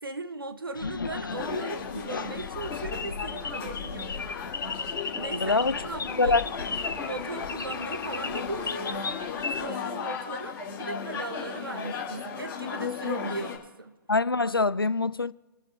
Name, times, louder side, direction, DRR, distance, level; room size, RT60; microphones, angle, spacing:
voice 1, 0.0-4.1 5.2-6.4 6.9-9.0 9.6-13.9, right 2 dB, 80° right, 1.1 m, -37 dB
sound 1, 0.7-9.6, left 5 dB, 65° left, 0.9 m, -36 dB
sound 2, 1.3-13.6, left 6 dB, 20° left, 2.9 m, -35 dB
voice 2, 5.3-5.8 6.2-6.5 14.1-15.3, left 3 dB, 85° left, 0.5 m, -24 dB
29.0 x 13.0 x 2.6 m
figure-of-eight pair, 130°, 12 cm